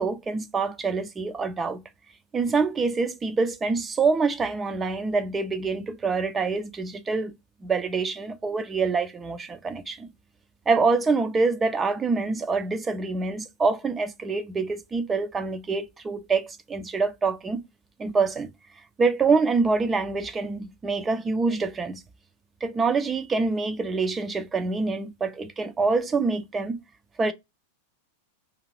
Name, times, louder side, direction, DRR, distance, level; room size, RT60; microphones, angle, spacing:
voice 1, 0.0-1.8 2.3-7.3 7.6-10.1 10.7-17.6 18.0-18.5 19.0-22.0 22.6-26.8 27.2-27.3, right 4 dB, 20° right, 0.4 m, -25 dB
2.5 x 2.3 x 3.1 m
hypercardioid pair, 100°, 0 cm